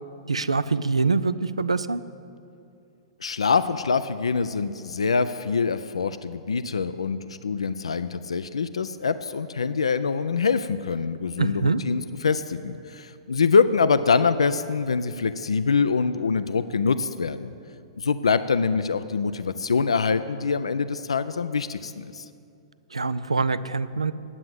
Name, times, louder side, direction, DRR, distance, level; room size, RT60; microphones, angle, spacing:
voice 1, 0.3-2.0 11.4-11.8 22.9-24.1, right 4 dB, 90° right, 15 dB, 0.4 m, -24 dB
voice 2, 3.2-17.5 18.0-22.3, left 5 dB, 80° left, 13 dB, 0.4 m, -24 dB
9.7 x 7.7 x 7.7 m, 2.5 s
figure-of-eight pair, 110°, 3 cm